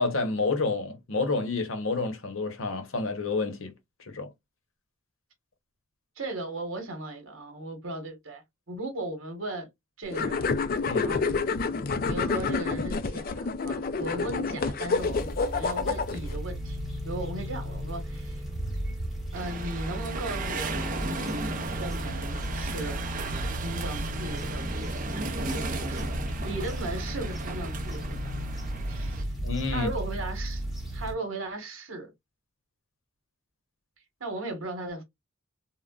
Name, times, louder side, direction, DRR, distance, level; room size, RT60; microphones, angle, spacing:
voice 1, 0.0-3.7 4.1-4.3 10.8-11.2 29.4-29.9, left 3 dB, 65° left, 0.8 m, -29 dB
voice 2, 6.2-8.4 8.7-9.7 10.0-10.5 11.0-11.2 12.1-16.8 17.0-18.4 19.3-23.1 23.6-25.0 25.4-26.1 26.4-28.4 28.9-29.3 29.7-30.6 30.9-32.1 34.2-35.0, right 2 dB, 70° right, 1.1 m, -37 dB
sound 1, 10.1-16.4, left 4 dB, 40° left, 0.3 m, -28 dB
sound 2, 14.9-31.1, equal, ahead, 1.0 m, -35 dB
sound 3, 19.3-29.2, right 2 dB, 35° right, 0.5 m, -35 dB
3.7 x 2.1 x 2.2 m
head